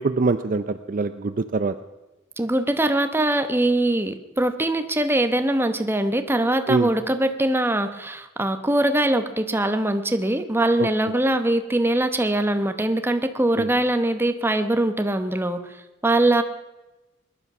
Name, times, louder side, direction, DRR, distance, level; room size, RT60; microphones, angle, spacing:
voice 1, 0.0-1.7 6.7-6.9 10.8-10.9 13.6-13.7, right 3 dB, 40° right, 11 dB, 0.5 m, -24 dB
voice 2, 2.4-15.6 16.0-16.4, right 1 dB, 10° right, 8 dB, 0.9 m, -22 dB
20.5 x 11.0 x 6.0 m, 1.1 s
head